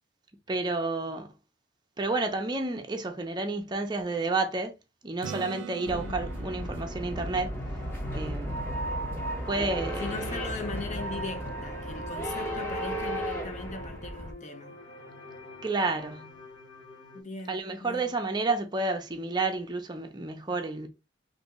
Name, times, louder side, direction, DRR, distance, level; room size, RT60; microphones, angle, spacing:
voice 1, 0.5-1.3 2.0-4.7 5.0-7.5 8.1-8.6 9.5-10.1 15.6-16.4 17.5-20.9, right 3 dB, 25° right, 0.6 m, -30 dB
Acoustic guitar / Strum, 5.2-9.0 13.8-13.9, right 8 dB, 70° right, 0.3 m, -44 dB
voice 2, 5.8-6.3 10.0-14.8 17.1-18.1, left 3 dB, 40° left, 0.6 m, -39 dB
sound 1, 5.8-14.3, equal, 10° left, 0.9 m, -34 dB
sound 2, 7.7-17.2, left 1 dB, 75° left, 0.7 m, -46 dB
3.3 x 2.6 x 3.0 m
head